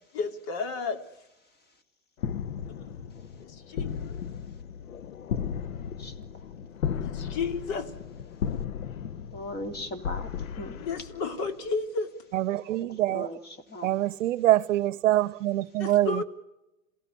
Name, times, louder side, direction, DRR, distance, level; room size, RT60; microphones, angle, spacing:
voice 1, 0.1-1.0 2.7-3.1 3.4-4.2 6.9-7.9 10.7-12.1 15.8-16.2, left 4 dB, 50° left, 2.8 m, -33 dB
sound 1, 2.2-11.7, left 7 dB, 85° left, 1.0 m, -35 dB
voice 2, 5.6-6.1 9.0-10.3 10.6-10.8 12.8-12.9 13.1-13.4 13.7-13.9, left 1 dB, 25° left, 3.0 m, -38 dB
voice 3, 12.3-13.4 13.8-16.2, right 14 dB, 70° right, 0.8 m, -25 dB
27.5 x 17.5 x 9.9 m
hypercardioid pair, 115°, 40 cm